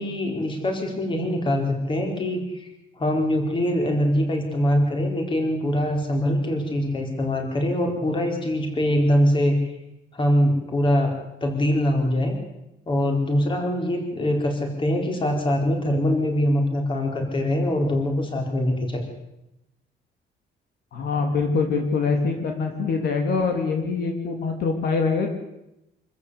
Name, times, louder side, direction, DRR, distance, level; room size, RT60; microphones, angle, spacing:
voice 1, 0.0-2.4 3.0-9.6 10.1-11.1 11.4-12.4 12.9-19.1, equal, 30° left, 2 dB, 4.5 m, -23 dB
voice 2, 20.9-25.3, left 4 dB, 65° left, 3 dB, 3.2 m, -24 dB
26.5 x 14.0 x 8.4 m, 0.89 s
cardioid pair, 165°, 18 cm